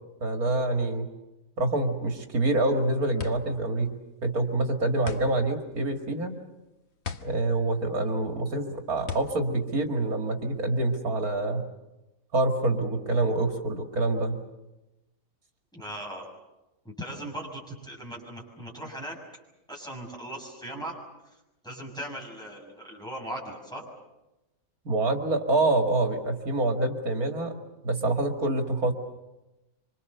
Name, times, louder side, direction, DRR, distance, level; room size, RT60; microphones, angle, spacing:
voice 1, 0.2-1.1 1.6-3.9 4.2-6.4 7.2-11.6 12.3-14.4 24.8-27.5 27.8-28.9, right 2 dB, 85° right, 3 dB, 2.7 m, -26 dB
sound 1, 2.6-10.7, left 6 dB, 50° left, 1.4 m, -40 dB
voice 2, 15.7-16.3 16.8-19.2 19.7-20.9 21.6-23.9, right 1 dB, 5° left, -2 dB, 6.8 m, -38 dB
26.5 x 26.0 x 6.9 m, 0.97 s
omnidirectional pair, 1.5 m